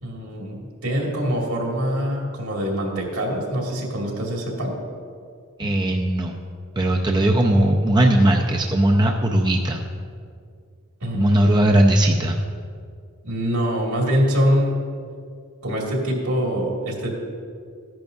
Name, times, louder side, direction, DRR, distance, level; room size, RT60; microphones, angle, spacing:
voice 1, 0.0-4.7 5.6-5.7 11.0-11.7 13.2-14.8 15.6-17.2, equal, 75° right, -2 dB, 2.3 m, -24 dB
voice 2, 5.6-6.4 6.8-9.8 11.1-12.4, right 1 dB, 20° right, 1 dB, 0.4 m, -18 dB
14.0 x 10.5 x 2.6 m, 2.2 s
head